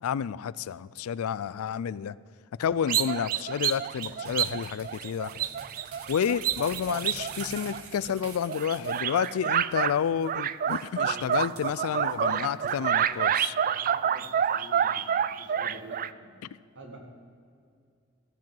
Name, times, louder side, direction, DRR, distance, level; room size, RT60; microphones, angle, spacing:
voice 1, 0.0-2.2 2.6-5.3 6.1-13.5, left 8 dB, 75° left, 19 dB, 0.4 m, -30 dB
sound 1, 2.9-8.1 8.5-9.9 10.3-16.1, right 9 dB, 40° right, 0.3 m, -28 dB
sound 2, 3.7-9.4 9.7-9.8 10.2-10.3 10.7-10.9 11.3-12.1 12.7-12.8, right 5 dB, 75° right, 1.4 m, -45 dB
voice 2, 10.9-16.3 16.7-17.0, right 1 dB, 60° right, 2 dB, 2.1 m, -48 dB
13.0 x 7.5 x 7.7 m, 2.3 s
head